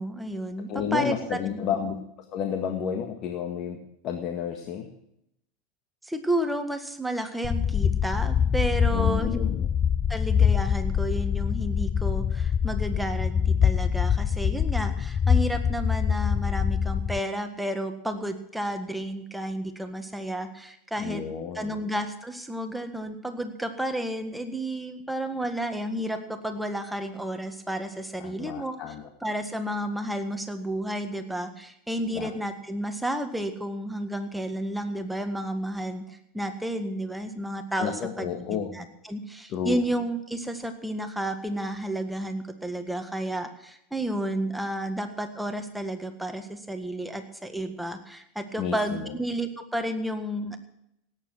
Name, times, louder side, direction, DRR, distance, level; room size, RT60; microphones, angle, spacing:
voice 1, 0.0-1.9 6.0-9.5 10.1-21.2 21.5-28.8 29.2-50.6, right 1 dB, 5° right, 6 dB, 1.7 m, -31 dB
voice 2, 0.7-2.0 2.3-3.8 4.0-4.9 8.9-9.7 21.0-21.8 28.2-29.0 32.1-32.3 37.8-38.7 39.5-39.8 48.6-49.1, left 8 dB, 45° left, 4 dB, 1.7 m, -31 dB
sound 1, 7.4-17.2, left 7 dB, 30° left, 0.4 m, -24 dB
17.5 x 9.7 x 6.2 m, 0.78 s
hypercardioid pair, 90°, 0 cm